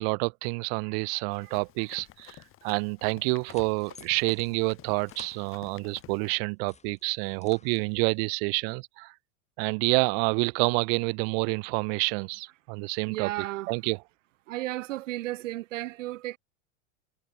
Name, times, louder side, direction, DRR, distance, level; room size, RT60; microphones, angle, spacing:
voice 1, 0.0-9.1 9.6-13.3 13.7-14.0, right 37 dB, 50° right, 0.8 m, -28 dB
Run, 1.3-6.4, left 14 dB, 35° left, 1.0 m, -51 dB
sound 1, 3.1-6.1 6.5-8.2, left 5 dB, 15° left, 3.8 m, -55 dB
voice 2, 13.1-13.7 14.5-16.4, right 16 dB, 70° right, 1.5 m, -34 dB
hypercardioid pair, 100°, 39 cm